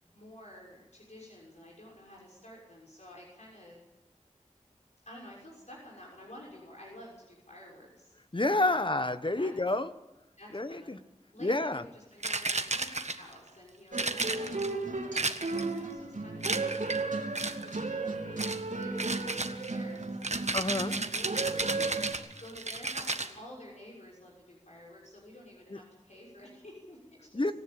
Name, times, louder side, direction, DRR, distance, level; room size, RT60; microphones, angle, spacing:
voice 1, 0.0-3.8 5.1-8.8 9.4-9.5 10.4-11.0 11.3-17.2 17.9-19.4 19.6-20.6 20.9-27.4, left 1 dB, 65° left, -3 dB, 6.4 m, -51 dB
voice 2, 8.3-9.9 10.5-11.0 11.4-11.8 20.5-21.0 27.3-27.5, left 2 dB, 40° left, 11 dB, 1.3 m, -29 dB
sound 1, 12.2-13.4 13.9-14.7 15.2-15.8 16.4-17.0 17.3-17.8 18.4-18.6 19.0-23.3, right 3 dB, 65° right, 1.5 m, -33 dB
sound 2, 13.9-22.1, right 3 dB, 90° right, 3.5 m, -34 dB
26.0 x 14.5 x 9.0 m, 0.97 s
wide cardioid pair, 50°, 13 cm